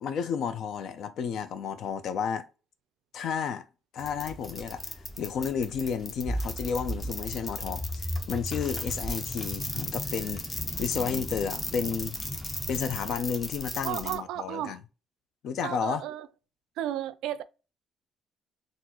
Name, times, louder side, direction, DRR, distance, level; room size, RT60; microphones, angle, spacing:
voice 1, 0.0-2.5 3.1-3.7 3.9-4.8 5.2-10.4 10.8-12.2 12.7-14.8 15.4-16.0, left 7 dB, 60° left, 0.5 m, -32 dB
sound 1, 4.0-14.1, left 2 dB, 25° left, 0.7 m, -37 dB
sound 2, 6.3-13.1, equal, ahead, 0.3 m, -37 dB
voice 2, 13.8-14.8 15.6-16.3 16.8-17.4, right 12 dB, 85° right, 0.3 m, -33 dB
4.0 x 2.5 x 2.9 m
cardioid pair, 125°, 0 cm